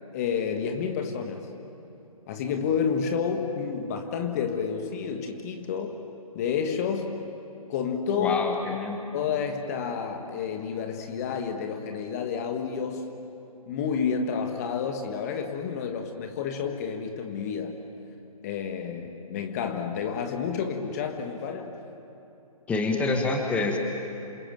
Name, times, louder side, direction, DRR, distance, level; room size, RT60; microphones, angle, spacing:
voice 1, 0.1-1.5 2.3-6.0 6.3-7.2 7.7-8.4 9.1-13.1 13.7-17.8 18.4-21.8, left 6 dB, 25° left, 5 dB, 1.5 m, -30 dB
voice 2, 8.2-9.0 22.7-23.8, left 3 dB, 5° left, 3 dB, 1.5 m, -27 dB
27.5 x 27.0 x 7.6 m, 2.8 s
figure-of-eight pair, 140°, 19 cm